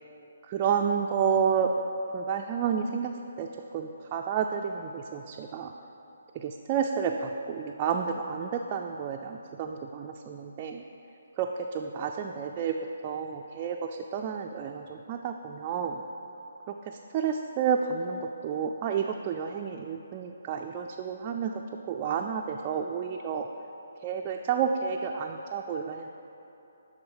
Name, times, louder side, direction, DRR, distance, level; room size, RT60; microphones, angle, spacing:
voice 1, 0.5-1.7 2.1-3.5 3.7-5.7 6.4-10.8 11.4-11.5 11.7-12.7 13.0-16.0 17.1-21.5 21.9-23.5 24.0-26.1, right 7 dB, 30° right, 1 dB, 0.3 m, -30 dB
10.5 x 3.6 x 4.8 m, 3.0 s
figure-of-eight pair, 145°, 0 cm